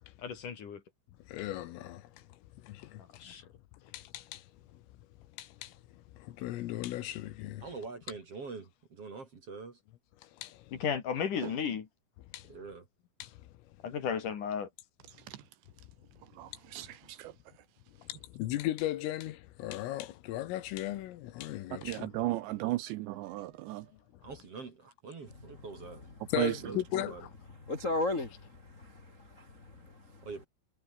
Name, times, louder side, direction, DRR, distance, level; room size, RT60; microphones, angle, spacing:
voice 1, 0.2-0.8 3.2-3.4 10.8-11.8 13.8-14.7, left 7 dB, 50° left, 3.2 m, -34 dB
voice 2, 1.3-2.3 2.6-3.4 3.9-4.8 5.3-7.7 10.2-10.8 12.3-12.5 13.2-13.8 18.0-22.1 26.3-27.2, left 14 dB, 80° left, 4.0 m, -38 dB
voice 3, 7.6-9.8 12.5-12.8 22.2-22.7 24.2-26.0 26.4-27.3 30.2-30.4, right 4 dB, 40° right, 2.7 m, -45 dB
voice 4, 15.1-15.4 16.3-17.3 21.8-23.9 26.4-26.6, right 17 dB, 80° right, 2.6 m, -35 dB
voice 5, 27.7-30.3, left 2 dB, 25° left, 1.8 m, -36 dB
omnidirectional pair, 6.0 m